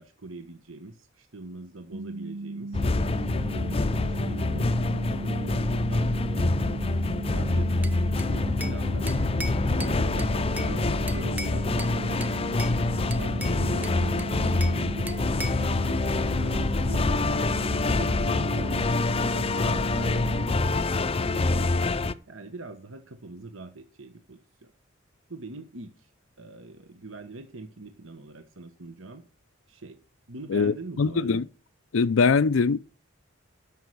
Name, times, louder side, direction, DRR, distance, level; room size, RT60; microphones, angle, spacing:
voice 1, 0.0-2.8 3.4-6.6 7.2-9.1 9.7-12.2 12.9-15.1 15.5-16.0 16.3-17.2 18.0-21.9 22.3-24.7 25.3-26.1 26.4-29.2 29.7-30.0 30.3-31.4, right 2 dB, 80° right, 1.3 m, -42 dB
sound 1, 1.9-20.5, right 2 dB, 35° right, 1.1 m, -37 dB
sound 2, 2.7-22.1, left 2 dB, 30° left, 0.5 m, -26 dB
Bell / Glass, 7.8-8.8 9.1-10.7 11.1-11.9 12.2-12.8 13.1-14.8 15.1-15.7, right 1 dB, 10° right, 0.7 m, -39 dB
voice 2, 30.5-31.4 31.9-32.8, left 5 dB, 80° left, 0.5 m, -22 dB
13.0 x 5.6 x 7.9 m
head